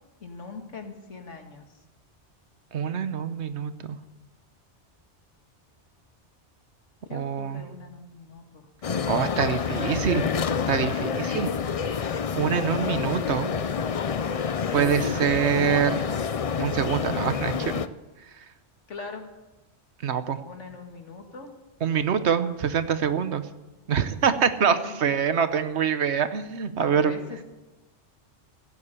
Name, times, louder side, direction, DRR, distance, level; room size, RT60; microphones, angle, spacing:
voice 1, 0.2-1.6 7.1-9.0 14.6-15.2 15.5-16.2 17.3-17.7 18.9-19.3 20.4-21.5 24.6-25.0 26.7-27.4, left 4 dB, 90° left, 4 dB, 2.2 m, -41 dB
voice 2, 2.7-4.0 7.1-7.6 9.1-10.2 10.7-11.5 12.3-13.5 14.7-16.0 16.6-17.5 20.0-20.4 21.8-23.4 23.9-27.1, right 7 dB, 70° right, 11 dB, 1.1 m, -25 dB
sound 1, 8.8-17.9, left 6 dB, 45° left, 0.4 m, -28 dB
16.0 x 8.4 x 8.2 m, 1.1 s
omnidirectional pair, 1.2 m